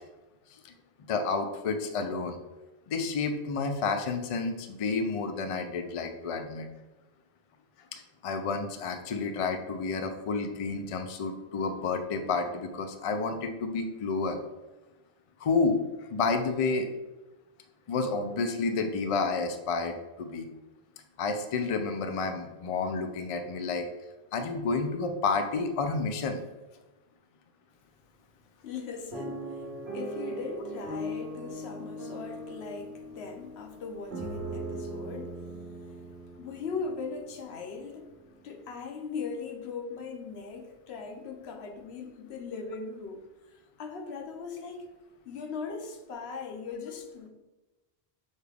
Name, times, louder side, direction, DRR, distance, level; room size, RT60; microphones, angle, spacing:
voice 1, 1.1-2.4 2.9-6.7 7.9-14.4 15.4-15.8 16.1-16.9 17.9-20.5 21.2-23.9 24.3-26.4, left 4 dB, 55° left, 0.4 m, -30 dB
voice 2, 28.6-38.1 38.4-43.2 43.8-44.9 45.2-47.3, left 5 dB, 85° left, 0.9 m, -39 dB
sound 1, 29.1-37.2 37.8-37.9 38.2-38.4, right 1 dB, 85° right, 1.3 m, -39 dB
6.5 x 2.3 x 3.3 m
omnidirectional pair, 1.1 m